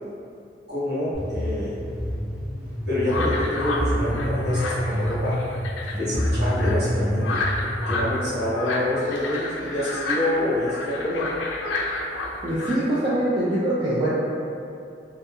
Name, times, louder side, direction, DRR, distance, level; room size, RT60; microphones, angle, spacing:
voice 1, 0.7-1.8 2.9-5.4 5.9-7.4 7.9-11.3, left 1 dB, 60° right, -13 dB, 1.3 m, -27 dB
sound 1, 1.1-8.0, equal, 5° right, 0.8 m, -27 dB
sound 2, 3.1-12.8, left 2 dB, 85° left, 0.3 m, -30 dB
voice 2, 12.4-14.1, right 1 dB, 25° right, -10 dB, 0.3 m, -23 dB
2.8 x 2.6 x 2.3 m, 2.5 s
head